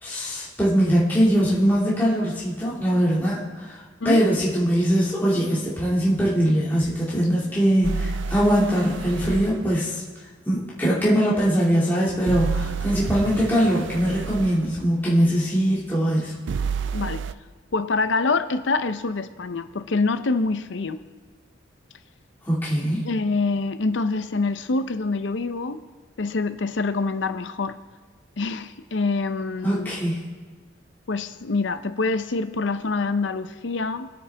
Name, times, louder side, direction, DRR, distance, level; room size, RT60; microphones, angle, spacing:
voice 1, 0.0-3.8 4.0-10.0 10.5-16.3 22.4-23.0 29.6-30.2, equal, 10° left, -8 dB, 2.0 m, -22 dB
sound 1, 7.8-9.5 12.3-14.6 16.5-17.3, right 5 dB, 75° right, 0.4 m, -29 dB
voice 2, 16.9-17.2 17.7-21.0 23.0-25.8 26.2-27.8 28.4-29.9 31.1-34.1, left 3 dB, 70° left, 11 dB, 0.6 m, -25 dB
22.0 x 8.7 x 3.4 m, 1.4 s
head